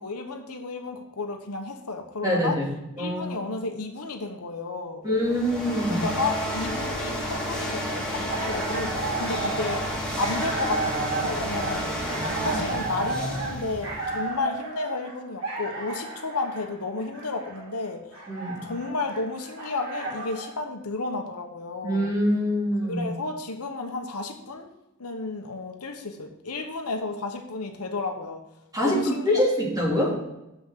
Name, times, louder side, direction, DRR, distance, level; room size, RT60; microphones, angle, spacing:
voice 1, 0.0-2.6 3.0-5.0 5.9-11.9 12.4-18.0 18.6-22.1 22.9-24.7 25.0-28.4 28.8-29.4, left 3 dB, 75° left, 4 dB, 1.1 m, -32 dB
voice 2, 2.2-2.6 3.0-3.4 5.0-6.1 12.2-12.4 18.3-18.7 21.8-23.0 28.7-30.2, equal, 15° right, -4 dB, 2.8 m, -25 dB
sound 1, 5.1-14.3, equal, 5° left, 2.8 m, -31 dB
sound 2, 8.1-20.5, right 3 dB, 60° right, 4.0 m, -34 dB
7.1 x 6.2 x 7.5 m, 0.93 s
head